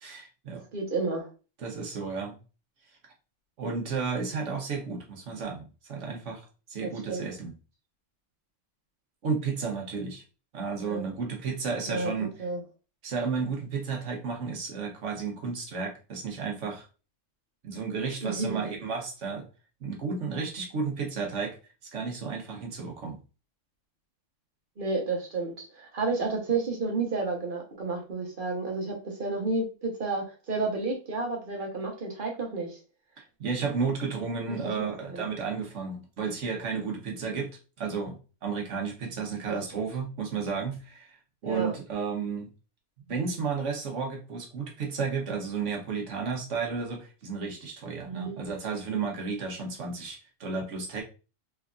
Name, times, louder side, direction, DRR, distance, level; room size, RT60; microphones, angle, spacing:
voice 1, 0.0-0.6 1.6-2.4 3.6-6.4 6.7-7.5 9.2-10.2 10.5-12.3 13.0-16.9 17.6-19.5 19.8-21.6 21.8-23.2 33.4-37.5 37.8-41.2 41.4-42.5 43.1-51.0, right 5 dB, 75° right, 1 dB, 1.3 m, -32 dB
voice 2, 0.7-1.3 6.8-7.3 10.8-11.0 11.9-12.1 12.4-12.6 18.2-18.6 24.8-32.8 34.5-35.2 39.5-39.8 41.4-41.7 48.0-48.4, right 3 dB, 45° right, 0 dB, 1.2 m, -31 dB
3.6 x 3.4 x 2.4 m, 0.33 s
omnidirectional pair, 1.3 m